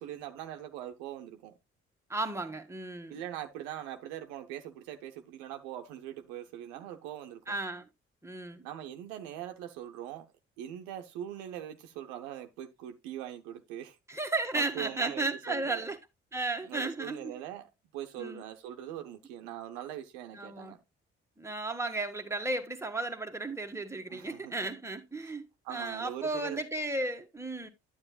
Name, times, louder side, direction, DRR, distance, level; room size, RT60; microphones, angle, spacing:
voice 1, 0.0-1.5 3.1-7.6 8.6-10.3 10.6-14.0 14.5-15.8 16.7-20.8 24.1-24.6 25.2-25.3 25.6-26.6, right 11 dB, 80° right, 0.8 m, -42 dB
voice 2, 2.1-3.2 7.5-7.9 8.2-8.6 14.1-16.0 16.3-17.3 18.2-18.4 20.3-20.8 21.4-27.7, right 2 dB, 10° right, 1.3 m, -34 dB
9.7 x 8.1 x 2.3 m
hypercardioid pair, 40°, 32 cm